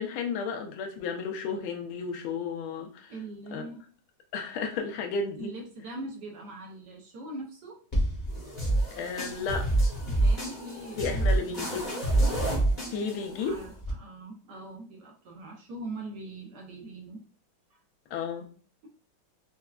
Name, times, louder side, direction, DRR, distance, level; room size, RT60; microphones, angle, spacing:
voice 1, 0.0-3.1 3.5-3.6 4.3-5.5 8.9-9.7 11.0-11.9 12.9-13.6 18.1-18.5, left 5 dB, 85° left, 4 dB, 1.5 m, -33 dB
voice 2, 3.1-3.9 5.4-7.8 10.1-11.9 13.1-17.2 17.7-17.8, right 2 dB, 65° right, -1 dB, 1.2 m, -42 dB
sound 1, 7.9-13.9, right 1 dB, 40° left, 0.7 m, -27 dB
4.4 x 2.2 x 2.3 m, 0.41 s
omnidirectional pair, 2.2 m